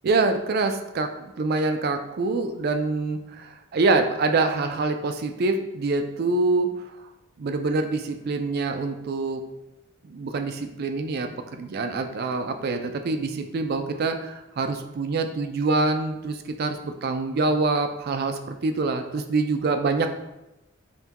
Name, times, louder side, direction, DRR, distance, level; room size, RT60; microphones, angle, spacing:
voice 1, 0.0-6.7 7.4-9.4 10.0-20.1, right 3 dB, 45° right, 7 dB, 0.3 m, -25 dB
5.5 x 2.2 x 2.9 m, 0.94 s
head